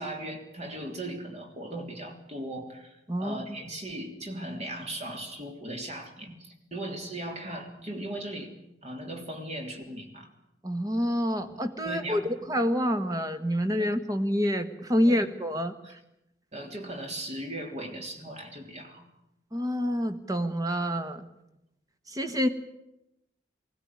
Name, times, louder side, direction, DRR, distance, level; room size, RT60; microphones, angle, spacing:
voice 1, 0.0-8.5 8.8-10.3 11.4-11.5 11.8-12.3 13.8-13.9 15.1-15.2 16.5-19.1, right 1 dB, 40° right, 4 dB, 3.3 m, -38 dB
voice 2, 3.1-3.6 10.6-16.0 19.5-21.2 22.1-22.5, equal, 20° right, 9 dB, 1.5 m, -27 dB
20.0 x 17.0 x 9.8 m, 0.86 s
head